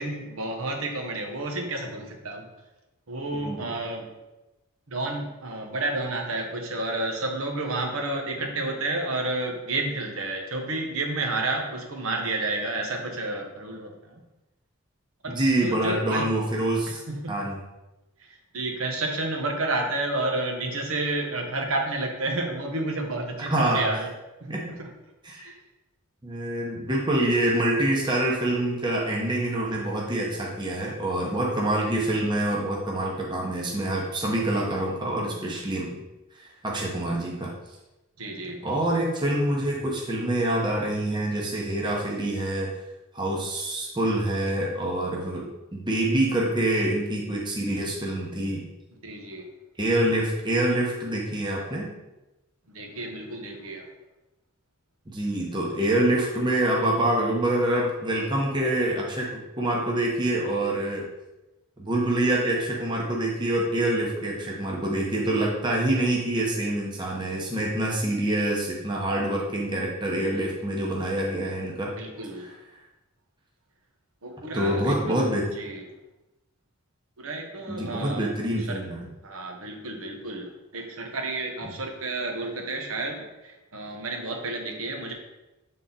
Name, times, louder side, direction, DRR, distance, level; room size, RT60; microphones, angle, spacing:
voice 1, 0.0-2.5 3.1-4.1 4.9-14.2 15.2-16.2 16.9-17.5 18.2-24.1 24.4-24.9 25.4-25.5 38.2-38.6 49.0-49.4 52.7-53.9 72.0-72.5 74.2-75.2 75.6-75.9 77.2-78.3 78.7-78.8 79.2-85.1, right 2 dB, 75° right, 2 dB, 1.1 m, -31 dB
voice 2, 3.3-3.7 15.3-17.0 17.3-17.6 23.4-23.9 24.5-24.7 25.2-25.5 26.2-36.0 36.4-37.5 38.6-42.7 43.1-48.7 49.8-51.9 55.1-61.0 61.8-71.9 72.4-72.5 74.5-75.5 77.7-79.0, right 1 dB, 20° right, -2 dB, 0.9 m, -26 dB
7.2 x 3.8 x 4.0 m, 1.0 s
head